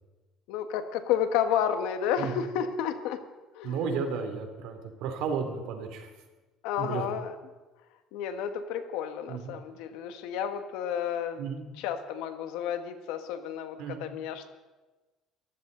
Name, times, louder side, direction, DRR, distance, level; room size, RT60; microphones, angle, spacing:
voice 1, 0.5-3.2 3.5-3.8 6.6-7.3 8.1-11.4 11.8-14.5, left 9 dB, 90° left, 8 dB, 1.6 m, -31 dB
voice 2, 3.6-6.1 6.8-7.0 9.3-9.6 11.4-11.7 13.8-14.0, right 6 dB, 70° right, 5 dB, 2.9 m, -33 dB
23.0 x 15.0 x 4.0 m, 1.2 s
cardioid pair, 160°, 0 cm